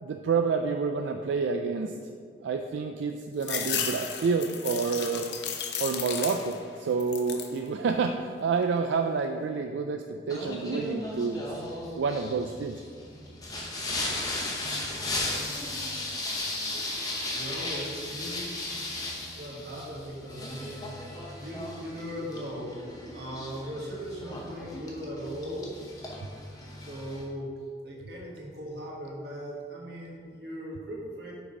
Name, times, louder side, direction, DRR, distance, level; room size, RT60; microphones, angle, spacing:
voice 1, 0.0-1.9 2.4-5.3 5.8-11.4 12.0-12.8, right 5 dB, 85° right, 5 dB, 0.3 m, -29 dB
sound 1, 3.4-6.7 7.0-7.6 8.1-8.8, left 7 dB, 70° left, 0.6 m, -34 dB
Singing, 10.3-27.2, left 2 dB, 20° left, 0.8 m, -36 dB
voice 2, 17.3-18.5 19.3-20.9 21.4-22.8 23.1-25.7 26.8-27.5 27.8-31.3, equal, 60° right, -3 dB, 1.5 m, -38 dB
5.8 x 4.1 x 5.3 m, 2.1 s
head